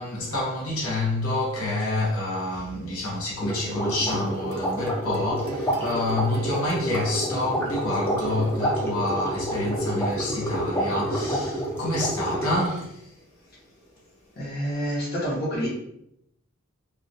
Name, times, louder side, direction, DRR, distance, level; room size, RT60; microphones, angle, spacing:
voice 1, 0.0-13.3 13.6-13.7, left 1 dB, 80° left, 0.8 m, -28 dB
sound 1, 3.4-12.8, right 1 dB, 10° left, 0.4 m, -28 dB
sound 2, 3.5-8.9, right 5 dB, 85° right, 0.3 m, -43 dB
voice 2, 14.3-15.7, equal, 45° left, 0.8 m, -28 dB
2.2 x 2.1 x 2.6 m
head